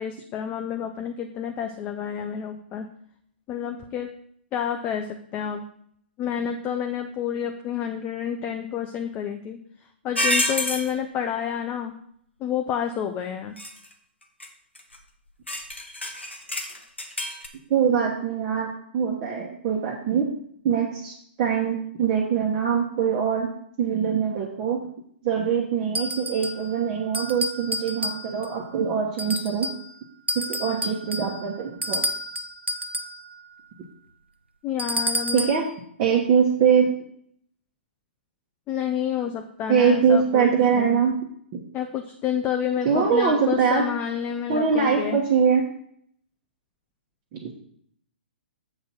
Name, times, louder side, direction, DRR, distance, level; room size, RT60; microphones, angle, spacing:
voice 1, 0.0-2.9 3.5-4.1 4.5-5.6 6.2-9.6 10.0-11.9 12.4-13.6 34.6-35.5 38.7-40.5 40.8-41.0 41.7-45.2, left 8 dB, 25° left, 5 dB, 0.6 m, -29 dB
sound 1, 10.2-10.9 13.6-13.9 14.4-14.5 14.8-15.0 15.5-17.5, left 1 dB, 85° left, 1.1 m, -27 dB
voice 2, 17.7-20.3 20.6-23.5 23.8-24.8 25.2-29.7 30.3-32.0 35.3-35.6 36.0-36.9 39.7-41.1 41.5-41.6 42.8-43.8 44.5-45.6 47.3-47.5, right 7 dB, 35° right, -2 dB, 1.3 m, -23 dB
sound 2, 25.9-26.7 27.1-28.6 29.2-29.9 30.3-33.2 34.8-35.6, equal, 90° right, 0.7 m, -30 dB
7.7 x 4.1 x 6.0 m, 0.66 s
figure-of-eight pair, 120°, 6 cm